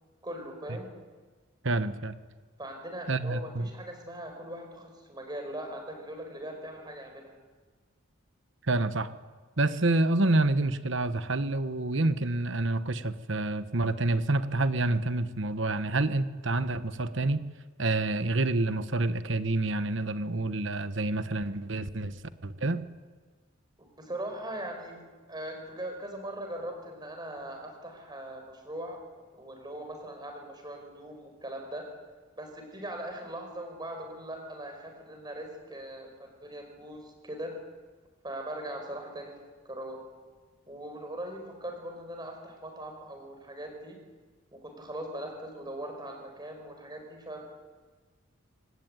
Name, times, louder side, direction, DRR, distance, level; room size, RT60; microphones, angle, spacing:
voice 1, 0.2-0.9 2.6-7.3 23.8-25.0 25.3-29.0 29.3-31.9 32.4-37.5 38.2-39.3 39.7-40.0 40.7-44.0 44.5-47.4, right 1 dB, 20° right, 4 dB, 5.4 m, -40 dB
voice 2, 1.6-2.1 3.1-3.7 8.7-9.1 9.6-17.4 17.8-22.1 22.4-22.8, right 2 dB, 60° right, 12 dB, 1.2 m, -28 dB
25.0 x 19.0 x 9.2 m, 1.4 s
head